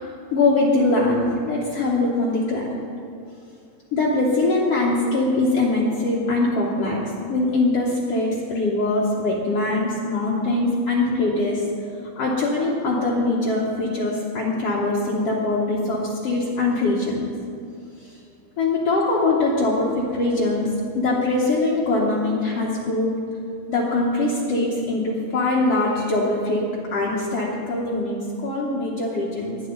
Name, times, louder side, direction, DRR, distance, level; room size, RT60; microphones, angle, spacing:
voice 1, 0.0-2.7 3.9-7.0 7.3-11.7 12.2-17.3 18.0-18.1 18.6-23.1 23.7-26.6 26.9-29.6, left 2 dB, 60° left, -5 dB, 2.0 m, -22 dB
20.0 x 9.2 x 3.9 m, 2.5 s
omnidirectional pair, 3.7 m